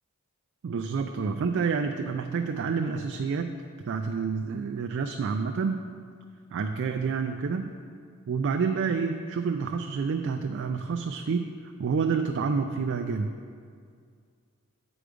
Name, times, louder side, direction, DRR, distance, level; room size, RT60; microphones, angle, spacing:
voice 1, 0.6-3.5 3.9-5.8 6.5-7.6 8.3-11.5 11.8-13.3, right 5 dB, 55° right, 5 dB, 0.3 m, -28 dB
7.8 x 4.9 x 5.0 m, 2.2 s
head